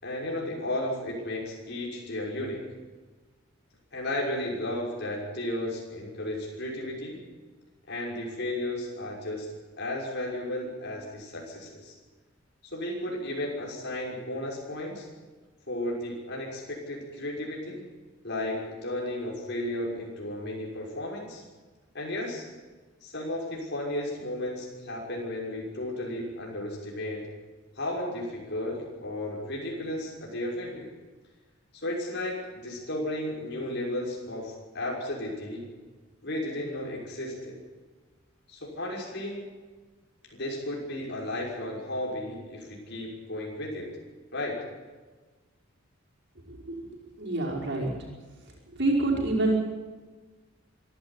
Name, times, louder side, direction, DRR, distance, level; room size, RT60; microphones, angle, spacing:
voice 1, 0.0-2.6 3.9-7.2 7.9-9.5 9.8-11.9 12.6-15.1 15.7-17.8 18.2-21.4 21.9-22.5 23.0-27.3 27.8-30.9 31.7-35.7 36.2-37.6 38.5-39.5 40.3-43.9 44.3-44.6, left 1 dB, 55° left, -2 dB, 6.0 m, -34 dB
voice 2, 46.5-46.8 47.2-47.9 48.7-49.6, right 2 dB, 55° right, -2 dB, 5.4 m, -26 dB
25.0 x 12.0 x 10.0 m, 1.3 s
head